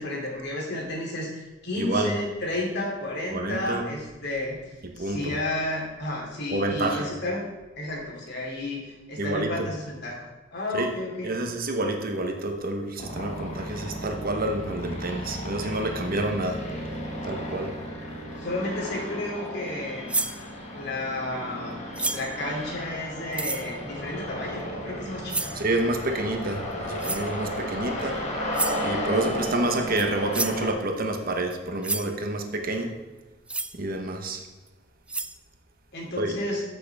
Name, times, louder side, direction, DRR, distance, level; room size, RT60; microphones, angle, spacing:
voice 1, 0.0-7.4 7.8-10.2 10.5-11.3 18.4-20.1 20.7-21.8 22.1-25.5 35.9-36.6, left 1 dB, 55° left, -2 dB, 2.9 m, -32 dB
voice 2, 1.7-2.2 3.3-3.9 4.8-5.3 6.5-7.1 9.2-9.7 10.7-10.9 11.2-16.6 17.2-17.8 25.5-28.2 28.8-32.9 33.7-34.4 36.2-36.3, right 2 dB, 45° right, 4 dB, 1.1 m, -28 dB
sound 1, 13.0-30.7, equal, 35° left, 1.7 m, -34 dB
sound 2, 20.1-20.4 21.9-22.4 23.3-23.7 25.3-25.6 27.0-27.3 28.5-28.8 30.0-30.1 30.3-30.6 31.5-31.6 31.8-32.1 33.5-33.7 34.7-34.8 35.1-35.3, right 3 dB, 5° right, 0.3 m, -29 dB
13.5 x 6.5 x 3.5 m, 1.2 s
head